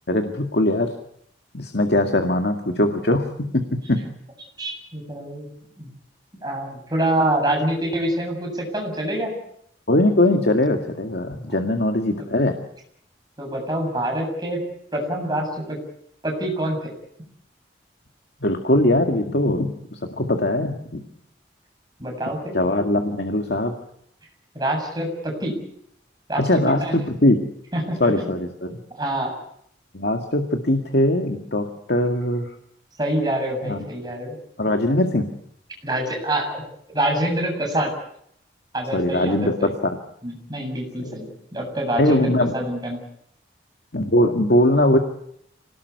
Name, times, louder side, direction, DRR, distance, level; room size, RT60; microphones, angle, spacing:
voice 1, 0.1-0.9 1.5-4.0 9.9-12.6 18.4-21.0 22.5-23.7 26.4-27.4 28.0-28.7 29.9-32.5 33.6-33.8 34.6-35.3 38.9-39.7 41.0-41.2 42.0-42.5 43.9-45.0, left 1 dB, 65° left, 4 dB, 2.1 m, -21 dB
voice 2, 4.6-5.5 5.8-5.9 6.4-9.3 11.5-11.6 12.2-12.3 13.4-14.6 14.9-15.8 16.2-16.9 22.0-22.5 24.5-25.5 26.3-27.0 27.7-28.3 28.7-29.4 33.0-34.4 35.8-36.6 36.9-37.9 38.7-39.7 40.2-42.3 42.5-43.0, right 1 dB, 20° right, 1 dB, 7.8 m, -26 dB
26.5 x 19.0 x 8.3 m, 0.73 s
head